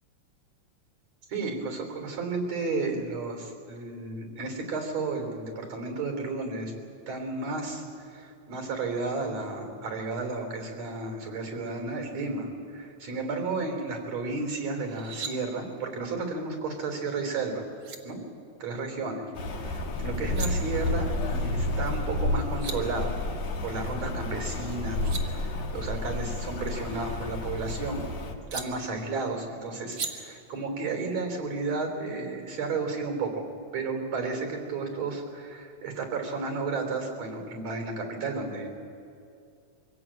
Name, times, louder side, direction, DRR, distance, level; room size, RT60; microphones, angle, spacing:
voice 1, 1.3-6.7 7.1-17.7 18.0-18.2 18.6-19.2 19.6-23.1 23.6-28.0 28.5-33.5 33.7-38.7, right 3 dB, 65° right, 3 dB, 4.6 m, -33 dB
sound 1, 14.8-15.3 17.4-17.5 17.8-18.0 20.1-20.5 22.2-22.3 22.4-22.8 24.7-25.2 26.7-27.8 28.5-28.6 29.9-30.1, right 5 dB, 40° right, 1.9 m, -38 dB
Rain, 19.3-28.3, left 2 dB, 70° left, 2.9 m, -31 dB
24.0 x 17.0 x 8.7 m, 2.5 s
omnidirectional pair, 3.3 m